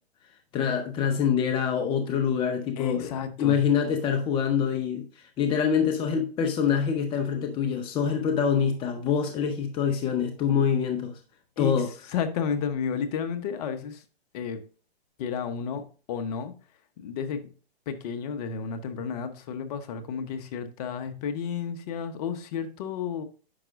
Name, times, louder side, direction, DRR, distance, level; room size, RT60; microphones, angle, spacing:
voice 1, 0.5-3.1 3.4-11.1 11.6-11.9, left 7 dB, 15° left, 0.7 m, -25 dB
voice 2, 2.8-3.6 11.6-11.7 12.1-14.0 14.3-14.6 15.2-16.5 17.0-17.5 17.9-23.2, left 7 dB, 40° left, 1.0 m, -32 dB
9.9 x 6.0 x 2.4 m
hypercardioid pair, 140°, 31 cm